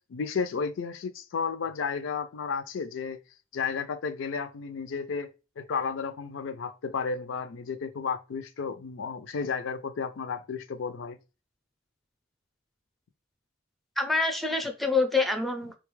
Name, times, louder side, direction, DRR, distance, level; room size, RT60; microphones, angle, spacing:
voice 1, 0.1-3.2 3.5-5.3 5.6-11.2, left 5 dB, 85° left, 0.4 m, -32 dB
voice 2, 14.0-15.8, left 3 dB, ahead, 0.4 m, -26 dB
3.7 x 2.3 x 3.1 m
head